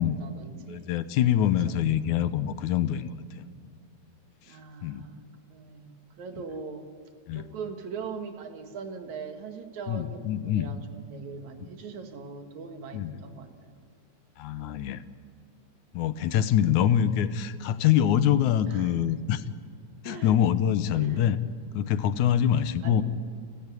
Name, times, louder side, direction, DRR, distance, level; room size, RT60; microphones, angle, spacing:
voice 1, 0.0-0.9 1.4-1.8 4.4-6.9 7.3-13.8 18.7-19.0 20.0-20.4 21.0-21.2 22.8-23.0, right 5 dB, 75° right, 6 dB, 3.1 m, -41 dB
voice 2, 0.7-3.1 4.8-5.0 7.3-7.4 9.9-10.7 12.9-13.1 14.4-15.0 15.9-19.4 20.0-21.4 21.7-23.0, left 10 dB, 85° left, 13 dB, 2.4 m, -24 dB
29.5 x 14.5 x 9.8 m, 2.3 s
omnidirectional pair, 3.3 m